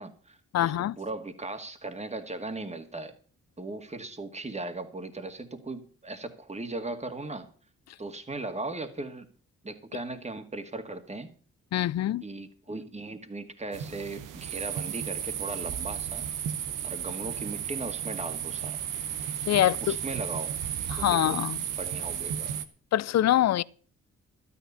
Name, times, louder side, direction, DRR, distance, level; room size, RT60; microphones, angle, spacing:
voice 1, 0.0-3.1 3.6-7.5 8.0-9.3 9.6-11.3 12.2-16.3 16.8-18.9 19.6-19.7 20.0-20.6 21.0-21.4 21.8-22.6, right 2 dB, 20° right, 2.0 m, -38 dB
voice 2, 0.5-1.0 7.9-8.0 11.7-12.3 19.5-20.0 20.9-21.6 22.9-23.6, left 13 dB, 55° left, 0.5 m, -24 dB
sound 1, 13.7-22.7, right 9 dB, 75° right, 1.0 m, -34 dB
12.5 x 10.0 x 5.6 m
hypercardioid pair, 40°, 31 cm